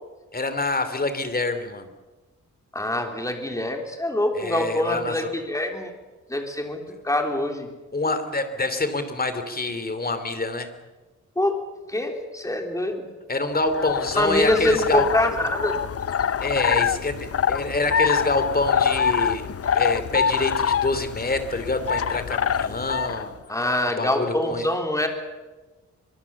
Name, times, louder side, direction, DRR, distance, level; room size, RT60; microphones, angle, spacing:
voice 1, 0.3-1.9 4.3-5.3 7.9-10.8 13.3-15.0 16.4-19.5 19.7-24.6, left 2 dB, 30° left, 10 dB, 3.0 m, -26 dB
voice 2, 2.7-5.9 6.3-7.7 11.3-11.6 11.9-13.1 14.2-15.8 23.5-25.1, left 1 dB, 10° left, 3 dB, 3.5 m, -24 dB
sound 1, 13.5-23.3, left 7 dB, 50° left, 0.7 m, -25 dB
23.5 x 23.5 x 7.2 m, 1.2 s
wide cardioid pair, 115°, 30 cm